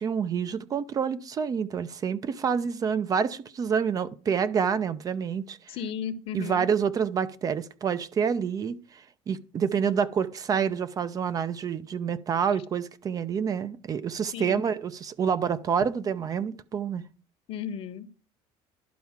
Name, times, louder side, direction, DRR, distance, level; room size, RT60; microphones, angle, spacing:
voice 1, 0.0-5.6 6.3-8.8 9.3-17.0, right 7 dB, 30° right, 0.7 m, -27 dB
voice 2, 5.7-6.7 12.5-12.6 14.3-14.6 17.5-18.1, left 7 dB, 55° left, 1.1 m, -35 dB
11.5 x 4.6 x 7.3 m
cardioid pair, 145°, 12 cm